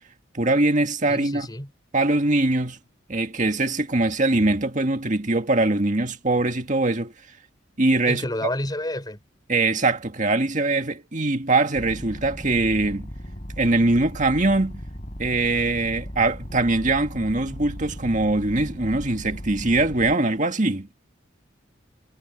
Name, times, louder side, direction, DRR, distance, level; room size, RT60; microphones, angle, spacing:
voice 1, 0.3-1.5 1.9-2.8 3.1-7.1 7.8-8.3 9.5-13.1 13.6-14.8 15.2-20.9, right 2 dB, 40° right, 1.9 m, -22 dB
voice 2, 1.1-1.7 8.1-9.2, left 1 dB, 20° left, 4.3 m, -29 dB
sound 1, 11.7-20.2, equal, 40° left, 7.7 m, -37 dB
head